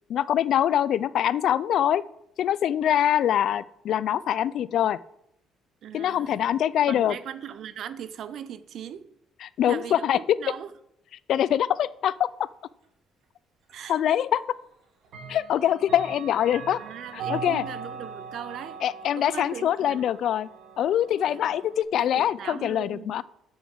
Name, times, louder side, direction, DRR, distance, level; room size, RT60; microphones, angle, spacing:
voice 1, 0.1-2.0 2.4-5.0 5.9-7.1 9.4-10.2 11.3-12.3 13.9-14.4 15.3-16.8 17.1-17.6 18.8-20.5 20.8-23.2, left 10 dB, 50° left, 0.3 m, -24 dB
voice 2, 5.8-6.4 6.9-9.1 9.6-10.7 13.7-14.0 16.8-18.8 19.2-20.0 21.3-21.5 21.9-23.2, right 9 dB, 45° right, 0.5 m, -39 dB
Clock, 13.7-13.8 15.0-21.8, right 5 dB, 65° right, 2.4 m, -40 dB
6.9 x 6.3 x 7.5 m
cardioid pair, 175°, 0 cm